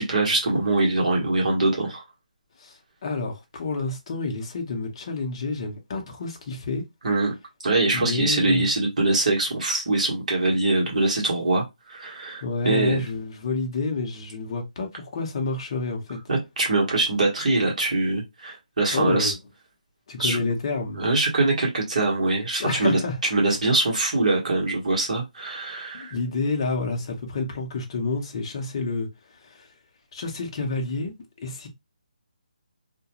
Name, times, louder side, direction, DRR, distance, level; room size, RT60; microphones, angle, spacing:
voice 1, 0.0-2.0 7.0-7.3 7.6-13.0 16.3-19.3 20.2-20.4 21.0-23.0 23.3-26.1, right 2 dB, 55° right, 1.1 m, -23 dB
voice 2, 2.6-6.8 7.9-8.7 12.4-16.2 18.9-19.3 20.1-21.0 22.6-23.2 25.9-29.7 30.1-31.1 31.4-31.7, left 3 dB, 35° left, 0.7 m, -29 dB
2.4 x 2.2 x 2.9 m
hypercardioid pair, 165°, 5 cm